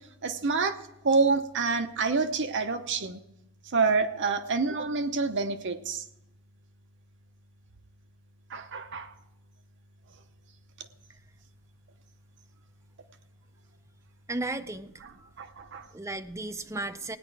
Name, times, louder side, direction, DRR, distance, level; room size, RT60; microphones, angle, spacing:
voice 1, 0.2-0.8 1.0-3.2 3.7-6.0 8.5-9.1 15.4-15.9, right 4 dB, 55° right, 8 dB, 0.8 m, -27 dB
voice 2, 14.3-14.9 15.2-15.3 15.9-17.2, right 2 dB, 15° right, 8 dB, 0.5 m, -34 dB
16.5 x 9.8 x 4.7 m, 0.88 s
head